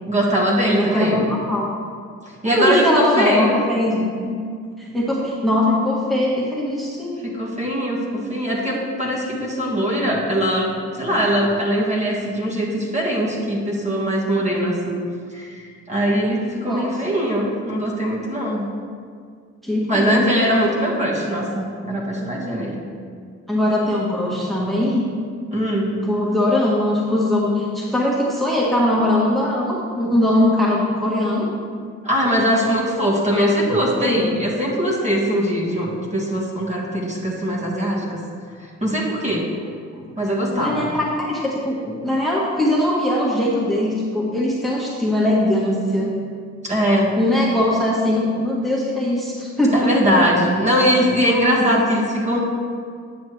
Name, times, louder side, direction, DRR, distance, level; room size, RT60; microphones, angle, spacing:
voice 1, 0.1-1.3 2.4-3.6 7.2-15.0 15.3-18.6 19.9-22.8 25.5-25.9 32.0-38.2 38.6-39.5 40.2-40.9 46.6-47.2 49.7-52.4, equal, 25° right, -3 dB, 1.6 m, -21 dB
voice 2, 0.7-1.7 2.4-4.3 4.8-7.2 16.6-16.9 19.6-20.2 23.5-25.1 26.0-31.5 34.0-34.2 40.6-46.1 47.1-49.9 51.7-51.9, left 1 dB, ahead, -5 dB, 1.4 m, -21 dB
9.4 x 6.4 x 3.2 m, 2.1 s
cardioid pair, 90°, 30 cm